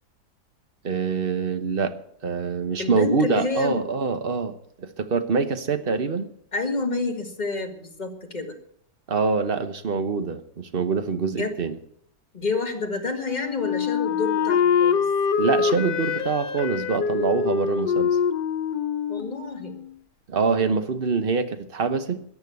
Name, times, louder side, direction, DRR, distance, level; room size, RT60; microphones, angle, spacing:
voice 1, 0.8-2.0 2.2-6.3 9.1-11.8 15.4-18.2 20.3-22.2, right 4 dB, 40° right, 9 dB, 1.2 m, -25 dB
voice 2, 2.8-3.8 6.5-8.6 11.3-11.6 12.3-15.1 19.1-19.8 20.5-20.6, left 3 dB, 25° left, 3 dB, 2.0 m, -29 dB
Wind instrument woodwind instrument, 13.2-20.0, left 6 dB, 90° left, 1.5 m, -24 dB
14.5 x 9.7 x 8.3 m, 0.68 s
omnidirectional pair, 1.8 m